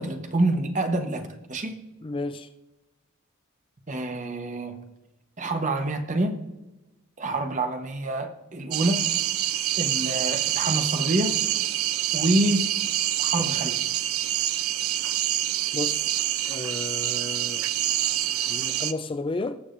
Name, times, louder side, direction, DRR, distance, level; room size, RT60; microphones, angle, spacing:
voice 1, 0.0-1.8 3.9-4.8 5.4-6.4 7.2-9.1 9.8-11.4 12.1-12.7 13.2-13.8, right 1 dB, 35° right, 6 dB, 1.0 m, -27 dB
voice 2, 2.0-2.5 15.7-16.0 16.5-17.7 18.5-19.6, left 2 dB, 25° left, 10 dB, 0.4 m, -32 dB
sound 1, 8.7-18.9, right 12 dB, 80° right, 0.5 m, -26 dB
21.0 x 7.1 x 2.6 m, 1.0 s
head